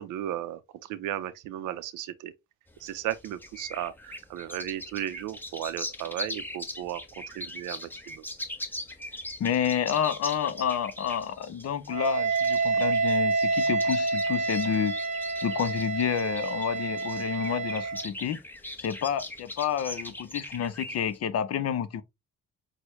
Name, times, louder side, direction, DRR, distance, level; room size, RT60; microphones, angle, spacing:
voice 1, 0.0-2.3 2.8-7.0 7.3-8.2, right 12 dB, 85° right, 0.6 m, -35 dB
sound 1, 2.7-21.2, left 1 dB, 5° left, 0.7 m, -41 dB
voice 2, 9.4-14.9 15.4-18.4 18.8-22.0, left 8 dB, 55° left, 0.6 m, -29 dB
Wind instrument woodwind instrument, 11.9-18.1, right 3 dB, 25° right, 0.8 m, -28 dB
6.1 x 2.2 x 3.1 m
cardioid pair, 90°, 30 cm